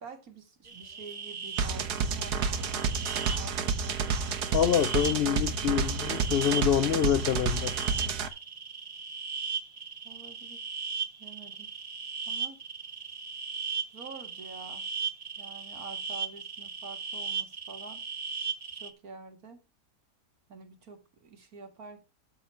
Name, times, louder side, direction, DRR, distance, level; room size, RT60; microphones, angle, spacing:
voice 1, 0.0-4.0 10.0-10.8 11.2-11.7 12.3-12.6 13.9-14.9 15.4-18.0 18.7-19.6 20.5-22.0, right 4 dB, 65° right, 2.3 m, -47 dB
sound 1, 0.6-18.9, right 5 dB, 30° right, 0.7 m, -38 dB
sound 2, 1.6-8.3, right 5 dB, 85° right, 1.6 m, -30 dB
voice 2, 4.5-7.7, left 9 dB, 60° left, 0.6 m, -26 dB
13.0 x 4.4 x 5.6 m
omnidirectional pair, 1.7 m